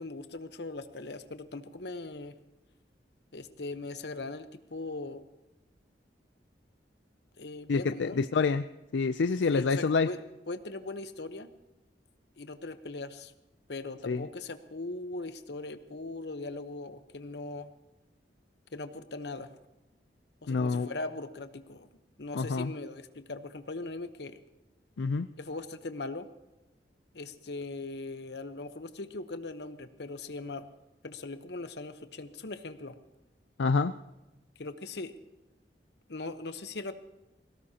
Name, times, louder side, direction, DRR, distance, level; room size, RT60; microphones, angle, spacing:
voice 1, 0.0-2.3 3.3-5.2 7.4-8.2 9.5-10.2 10.5-11.5 12.4-13.3 13.7-17.7 18.7-19.6 20.4-21.9 22.2-24.4 25.4-26.3 27.1-30.7 31.0-33.0 34.6-35.1 36.1-36.9, left 2 dB, 70° left, 10 dB, 1.0 m, -40 dB
voice 2, 7.7-8.6 8.9-10.1 14.1-14.2 20.5-20.9 22.3-22.7 25.0-25.3 33.6-33.9, left 4 dB, 85° left, 10 dB, 0.5 m, -27 dB
21.5 x 17.5 x 2.9 m, 1.0 s
head